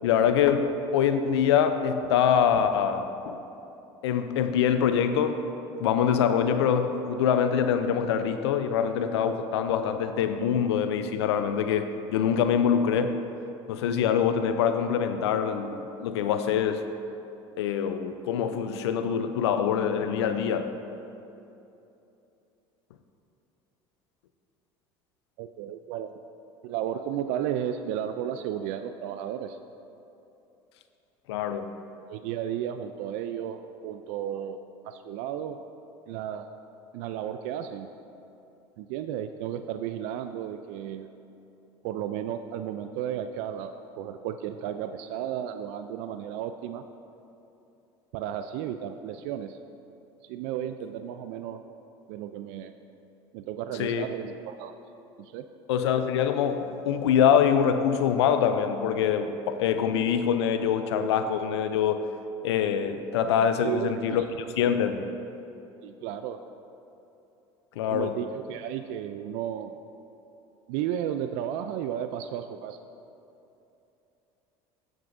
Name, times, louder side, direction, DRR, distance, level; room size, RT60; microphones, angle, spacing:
voice 1, 0.0-3.4 4.0-5.4 5.8-13.2 13.7-16.8 17.6-20.7 31.3-31.7 53.8-54.1 55.7-62.0 62.4-64.3 64.6-65.1 67.8-68.2, left 8 dB, 90° left, 9 dB, 0.5 m, -24 dB
voice 2, 25.4-26.1 26.6-29.6 32.1-34.6 34.8-35.6 36.1-36.5 36.9-37.9 38.8-41.1 41.8-46.8 48.1-49.6 50.3-51.6 52.1-52.7 53.3-54.7 55.2-55.4 63.6-64.3 65.8-66.4 67.9-69.7 70.7-72.8, right 10 dB, 70° right, 9 dB, 0.4 m, -33 dB
14.5 x 6.1 x 2.6 m, 2.8 s
supercardioid pair, 85°, 14 cm